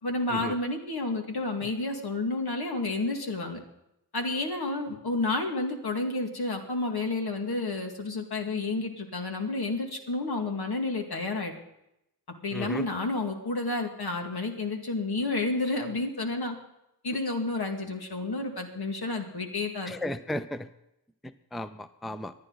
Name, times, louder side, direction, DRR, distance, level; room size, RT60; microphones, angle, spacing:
voice 1, 0.0-3.6 4.1-11.6 12.4-16.5 17.0-19.9, left 2 dB, 70° left, 3 dB, 2.2 m, -30 dB
voice 2, 12.5-12.9 19.9-20.7 21.5-22.3, left 1 dB, ahead, 12 dB, 0.5 m, -34 dB
25.0 x 9.8 x 4.0 m, 0.84 s
wide cardioid pair, 90°, 40 cm